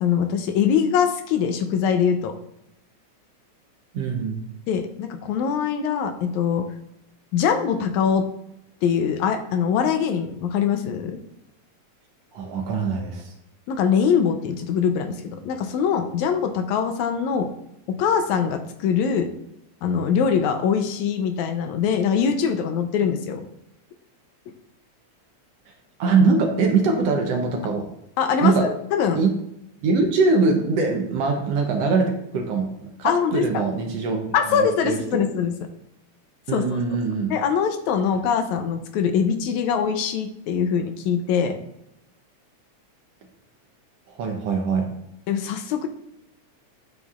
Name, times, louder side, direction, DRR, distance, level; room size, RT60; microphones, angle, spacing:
voice 1, 0.0-2.3 4.7-6.7 7.3-8.3 8.8-11.2 13.7-17.5 17.9-19.3 19.8-23.4 28.2-29.2 33.0-33.6 34.3-35.5 36.5-36.7 37.3-41.6 45.3-45.9, left 7 dB, 80° left, 7 dB, 2.0 m, -23 dB
voice 2, 3.9-4.5 12.3-13.3 26.0-27.9 28.4-28.7 29.2-29.3 29.8-35.2 36.5-37.3 44.1-44.9, right 4 dB, 70° right, 2 dB, 1.7 m, -22 dB
8.9 x 6.9 x 2.4 m, 0.82 s
omnidirectional pair, 3.3 m